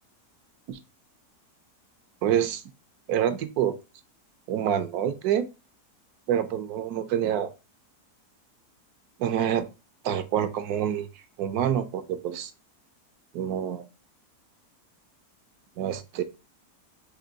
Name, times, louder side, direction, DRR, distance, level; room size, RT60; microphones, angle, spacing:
voice 1, 2.2-2.6 3.1-3.7 4.5-5.5 6.3-7.5 9.2-9.7 10.0-11.1 11.4-12.5 13.3-13.8 15.8-16.2, right 9 dB, 75° right, 1.1 m, -27 dB
4.4 x 3.1 x 3.8 m
omnidirectional pair, 1.7 m